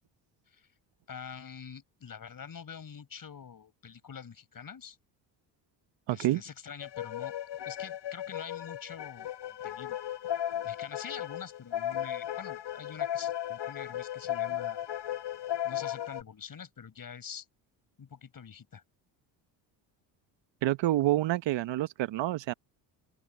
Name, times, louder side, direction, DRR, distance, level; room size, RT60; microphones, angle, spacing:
voice 1, 1.1-5.0 6.1-7.3 7.6-10.0 10.6-14.8 15.6-17.5 18.0-18.8, left 7 dB, 45° left, 6.1 m, -45 dB
voice 2, 6.1-6.4 20.6-22.5, right 15 dB, 65° right, 1.1 m, -28 dB
sound 1, 6.8-16.2, left 11 dB, 60° left, 5.9 m, -35 dB
open air
supercardioid pair, 70°, 47 cm